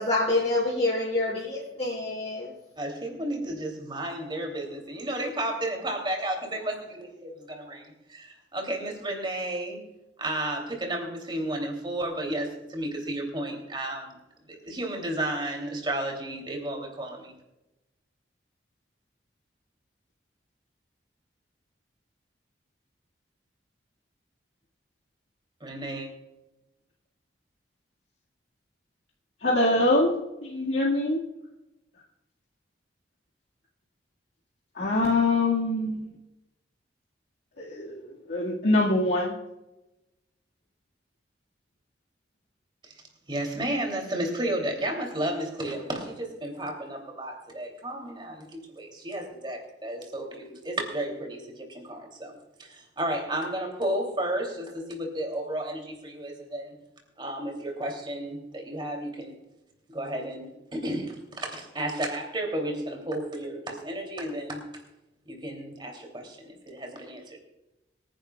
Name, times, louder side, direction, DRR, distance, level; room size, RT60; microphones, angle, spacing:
voice 1, 0.0-2.5, left 2 dB, 35° left, -8 dB, 5.7 m, -27 dB
voice 2, 2.8-9.8 10.2-14.2 14.5-17.3 25.6-26.1 42.8-42.9 43.3-56.7 57.2-59.4 59.9-64.6 65.3-67.4, right 1 dB, 25° right, 2 dB, 2.9 m, -33 dB
voice 3, 29.4-31.2 34.8-36.1 37.6-39.4, left 2 dB, 75° left, -5 dB, 1.9 m, -24 dB
25.5 x 10.5 x 2.3 m, 0.96 s
head